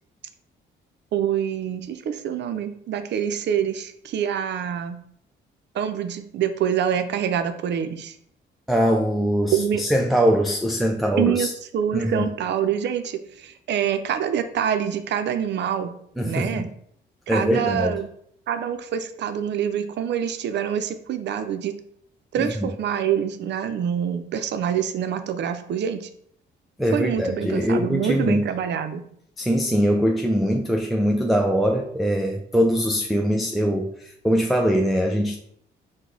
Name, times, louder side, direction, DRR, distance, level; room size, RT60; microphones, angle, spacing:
voice 1, 1.1-5.0 5.7-8.2 9.5-9.8 11.2-11.5 11.7-15.9 16.2-16.7 17.3-18.1 18.5-21.7 22.3-26.1 26.9-29.0, right 9 dB, 60° right, 9 dB, 0.5 m, -26 dB
voice 2, 8.7-11.5 11.9-12.3 16.2-16.6 17.3-18.0 22.4-22.7 26.8-28.4 29.4-33.9 34.2-35.4, equal, ahead, 1 dB, 0.4 m, -22 dB
4.7 x 2.1 x 3.8 m, 0.67 s
cardioid pair, 90°, 20 cm